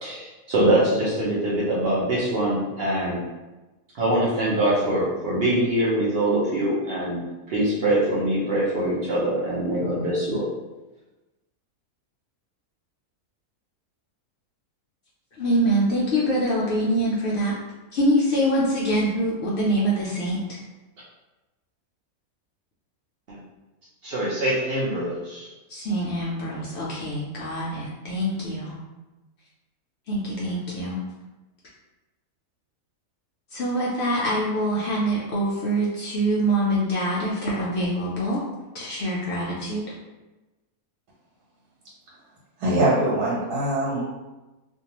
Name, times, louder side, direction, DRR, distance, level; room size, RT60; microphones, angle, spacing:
voice 1, 0.0-3.2 4.0-7.2 7.5-10.5 23.3-23.4 24.0-25.5, right 1 dB, 65° right, -7 dB, 0.6 m, -23 dB
voice 2, 15.4-17.5 17.9-20.6 25.7-28.8 30.1-31.0 33.5-38.4 38.7-39.8, right 1 dB, 80° left, -6 dB, 0.6 m, -24 dB
voice 3, 42.6-44.0, right 1 dB, 85° right, -6 dB, 1.2 m, -22 dB
2.5 x 2.3 x 2.9 m, 1.1 s
omnidirectional pair, 1.6 m